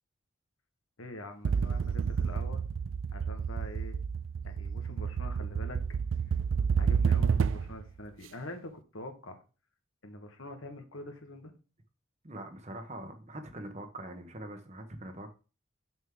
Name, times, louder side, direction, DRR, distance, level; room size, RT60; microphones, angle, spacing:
voice 1, 1.0-2.6 3.1-4.0 4.4-5.8 6.8-9.4 10.0-11.5, left 1 dB, 80° left, 1.4 m, -45 dB
sound 1, 1.4-7.8, right 6 dB, 70° right, 0.3 m, -30 dB
voice 2, 12.2-15.3, right 1 dB, 35° right, 1.0 m, -43 dB
6.3 x 6.2 x 3.7 m
head